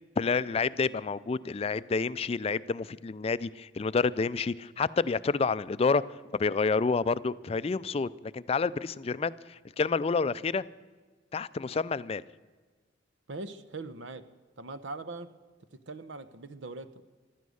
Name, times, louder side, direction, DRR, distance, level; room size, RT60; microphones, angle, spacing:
voice 1, 0.2-6.0 6.4-10.6 11.3-12.2, left 4 dB, 30° left, 0.3 m, -29 dB
voice 2, 13.3-14.3 14.6-15.3 15.7-17.0, right 3 dB, 80° right, 0.8 m, -41 dB
15.0 x 12.5 x 6.4 m
head